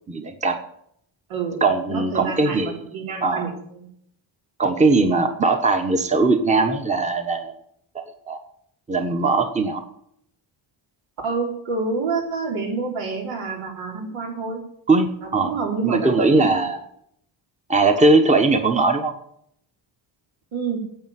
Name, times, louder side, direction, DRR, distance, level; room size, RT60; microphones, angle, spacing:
voice 1, 0.1-0.6 1.6-2.8 3.2-3.5 4.6-7.5 7.9-8.4 8.9-9.8 14.9-15.6 15.8-16.8 17.7-19.1, right 3 dB, 15° right, 6 dB, 1.1 m, -20 dB
voice 2, 1.9-3.9 11.2-14.6 15.2-16.6 20.5-20.8, right 4 dB, 80° right, 2 dB, 4.0 m, -28 dB
10.5 x 8.4 x 9.6 m, 0.70 s
cardioid pair, 160°, 47 cm